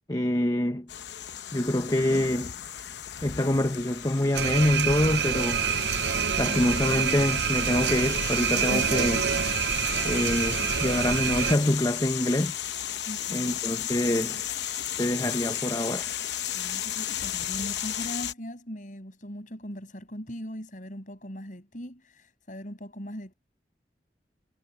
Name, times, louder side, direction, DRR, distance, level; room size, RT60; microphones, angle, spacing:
voice 1, 0.1-0.9 1.5-2.5 3.2-5.6 6.4-9.3 10.0-12.5 13.3-14.5 15.0-16.1, left 1 dB, 20° left, 0.9 m, -26 dB
sound 1, 0.9-18.3, left 11 dB, 80° left, 0.8 m, -34 dB
sound 2, 4.3-11.6, right 7 dB, 80° right, 0.7 m, -27 dB
voice 2, 13.0-13.6 16.5-23.3, equal, 45° left, 7.2 m, -39 dB
head